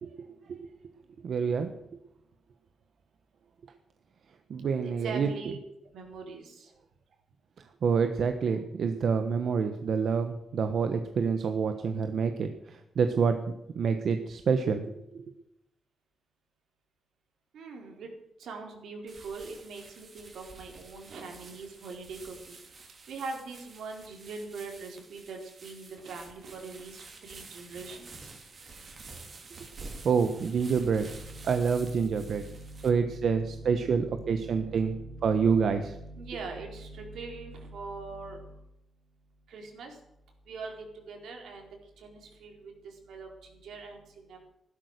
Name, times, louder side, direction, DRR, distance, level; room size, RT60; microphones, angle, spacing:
voice 1, 1.2-1.7 4.5-5.3 7.8-15.2 30.0-31.1 31.4-32.4 32.8-34.9 35.2-36.0, right 6 dB, 55° right, 7 dB, 1.2 m, -27 dB
voice 2, 4.7-5.6 5.9-6.7 17.5-18.1 18.4-22.5 23.1-28.3 30.6-38.6 39.5-40.0 40.5-41.7 42.0-44.4, right 3 dB, 75° right, 3 dB, 4.4 m, -42 dB
sound 1, 19.1-32.9, right 3 dB, 35° right, 3.0 m, -49 dB
15.5 x 12.5 x 6.7 m, 0.85 s
wide cardioid pair, 160°, 0 cm